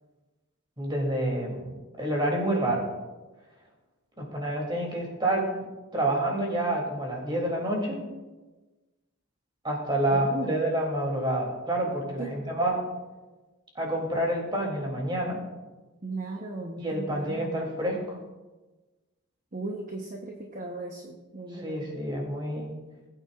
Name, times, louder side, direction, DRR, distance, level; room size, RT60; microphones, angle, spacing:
voice 1, 0.8-2.9 4.2-5.5 5.9-8.0 9.6-12.8 13.7-15.4 16.8-18.2 21.5-22.7, right 1 dB, 20° right, -1 dB, 2.9 m, -28 dB
voice 2, 10.1-10.6 12.2-12.3 16.0-17.6 19.5-21.8, right 2 dB, 40° right, 1 dB, 1.0 m, -37 dB
20.0 x 8.8 x 2.5 m, 1.2 s
head